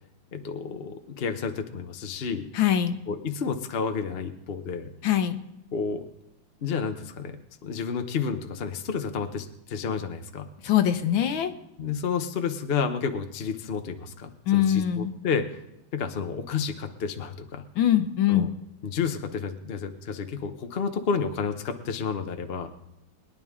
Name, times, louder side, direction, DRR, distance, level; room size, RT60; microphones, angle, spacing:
voice 1, 0.3-2.5 3.1-4.9 5.7-6.0 6.6-7.4 7.6-10.5 11.8-15.6 15.9-17.6 18.3-18.5 18.8-22.7, left 6 dB, 55° left, 7 dB, 0.6 m, -30 dB
voice 2, 2.5-3.0 5.0-5.4 10.6-11.5 14.5-15.1 17.8-18.5, left 10 dB, 70° left, 9 dB, 1.6 m, -23 dB
22.0 x 10.5 x 3.6 m, 0.84 s
omnidirectional pair, 2.3 m